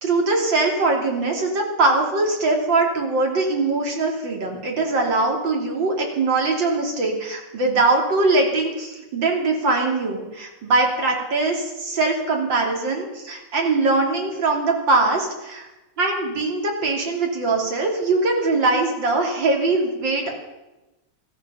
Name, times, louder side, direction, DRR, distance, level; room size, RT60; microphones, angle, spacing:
voice 1, 0.0-15.7 16.0-20.3, right 3 dB, 60° right, 1 dB, 3.6 m, -22 dB
17.5 x 14.0 x 5.6 m, 1.0 s
omnidirectional pair, 2.2 m